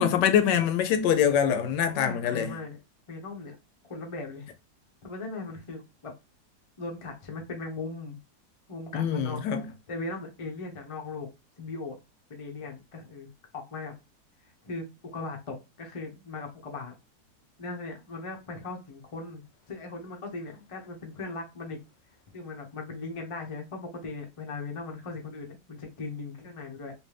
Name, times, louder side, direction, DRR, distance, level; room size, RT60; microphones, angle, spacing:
voice 1, 0.0-2.6 8.9-9.7, left 8 dB, 75° left, 1.2 m, -24 dB
voice 2, 1.9-2.8 3.1-3.6 3.9-4.5 5.0-6.1 6.8-8.2 8.7-9.4 9.9-11.3 11.6-12.0 12.3-13.9 14.6-14.8 15.1-16.9 17.6-21.8 22.3-26.9, left 3 dB, 40° left, 0.4 m, -38 dB
3.3 x 2.7 x 3.2 m
omnidirectional pair, 1.9 m